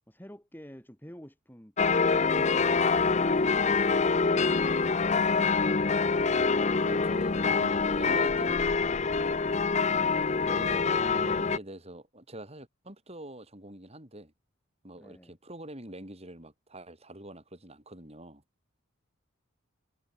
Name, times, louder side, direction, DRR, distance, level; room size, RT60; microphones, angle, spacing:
voice 1, 0.1-5.8 15.0-15.3, equal, 10° left, 3.2 m, -50 dB
sound 1, 1.8-11.6, left 4 dB, 35° left, 0.7 m, -25 dB
voice 2, 6.8-9.1 10.4-14.3 14.8-18.4, right 1 dB, 30° right, 7.7 m, -45 dB
head